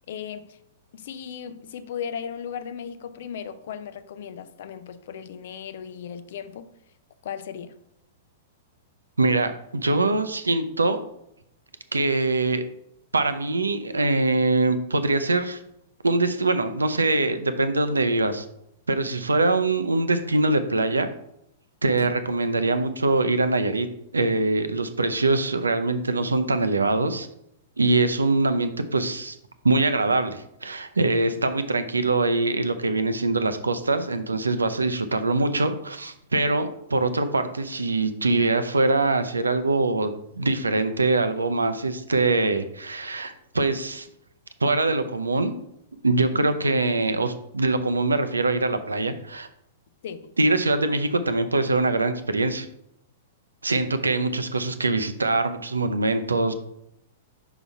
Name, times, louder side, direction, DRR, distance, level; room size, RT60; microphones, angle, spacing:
voice 1, 0.1-0.6 0.9-6.7 7.2-7.7 22.0-22.2 46.3-46.6 50.0-50.3, left 8 dB, 55° left, 0.5 m, -36 dB
voice 2, 9.2-11.0 11.9-12.6 13.1-15.6 16.0-18.4 18.9-21.1 21.8-23.9 24.1-27.3 27.8-29.4 29.6-44.1 44.6-45.5 46.0-49.5 50.4-52.7 53.6-56.5, right 2 dB, 80° right, 0.5 m, -23 dB
5.8 x 4.0 x 4.1 m
figure-of-eight pair, 105°, 0 cm